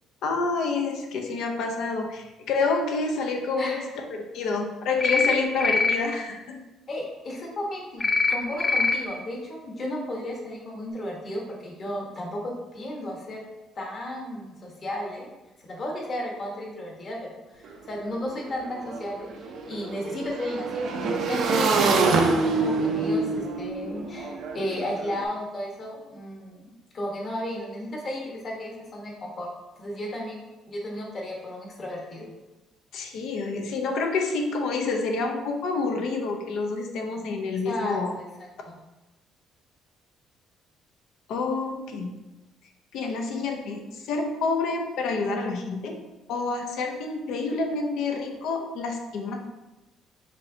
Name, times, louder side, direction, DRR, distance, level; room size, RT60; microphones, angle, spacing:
voice 1, 0.2-3.8 4.1-6.6 32.9-38.1 41.3-42.1 42.9-46.0 46.3-49.4, left 4 dB, 75° left, 3 dB, 0.6 m, -28 dB
voice 2, 3.6-3.9 6.9-13.4 13.7-15.3 15.6-17.2 17.5-29.5 29.8-32.3 37.6-38.2 38.6-38.8, left 1 dB, 40° left, -1 dB, 1.2 m, -34 dB
sound 1, 5.0-5.3 5.6-5.9 8.0-8.3 8.6-8.9, left 4 dB, 20° left, 0.4 m, -22 dB
Motorcycle / Engine, 17.6-17.7 18.0-25.1, right 3 dB, 65° right, 0.5 m, -26 dB
5.3 x 3.2 x 2.7 m, 1.1 s
cardioid pair, 120°, 0 cm